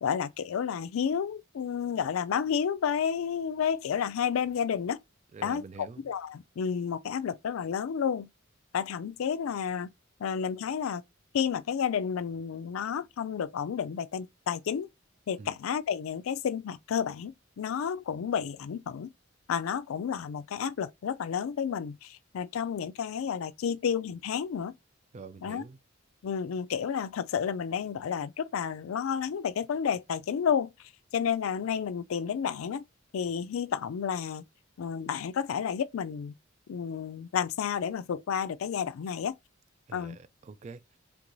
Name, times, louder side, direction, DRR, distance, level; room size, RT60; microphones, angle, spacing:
voice 1, 0.0-5.0 5.4-5.6 6.0-8.3 8.7-9.9 10.2-11.0 11.3-14.9 15.3-19.1 19.5-24.7 25.4-25.6 26.2-30.7 31.1-32.8 33.1-34.4 34.8-36.3 36.7-39.3 39.9-40.2, left 7 dB, 85° left, 0.4 m, -31 dB
voice 2, 5.3-6.0 15.4-15.6 25.1-25.8 39.9-41.0, right 4 dB, 35° right, 0.3 m, -46 dB
4.5 x 3.6 x 2.6 m
head